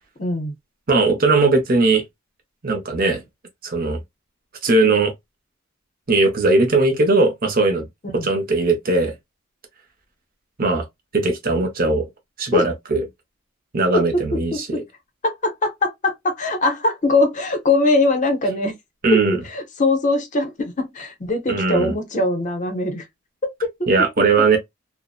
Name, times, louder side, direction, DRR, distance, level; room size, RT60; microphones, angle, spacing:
voice 1, 0.2-0.5 8.1-8.3 12.5-12.7 13.9-14.9 15.2-18.7 19.1-23.0 23.4-23.7, left 2 dB, 35° left, 0.6 m, -21 dB
voice 2, 0.9-2.0 2.6-3.2 3.6-4.0 4.6-5.1 6.1-7.9 8.1-9.1 10.6-10.8 11.1-12.0 12.4-13.0 13.7-14.8 19.0-19.4 21.5-22.0 23.9-24.6, right 3 dB, 45° right, 0.6 m, -18 dB
2.6 x 2.0 x 2.4 m
head